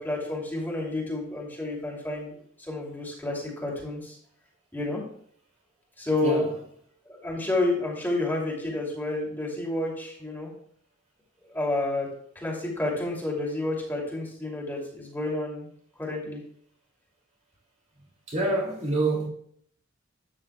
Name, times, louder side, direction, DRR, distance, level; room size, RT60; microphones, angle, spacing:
voice 1, 0.0-4.2 4.7-5.0 6.0-6.5 7.1-10.5 11.4-12.1 12.3-15.7 16.0-16.4, left 2 dB, 10° left, 2.7 m, -30 dB
voice 2, 18.3-19.3, right 2 dB, 35° right, 2.5 m, -26 dB
13.0 x 8.9 x 2.3 m
head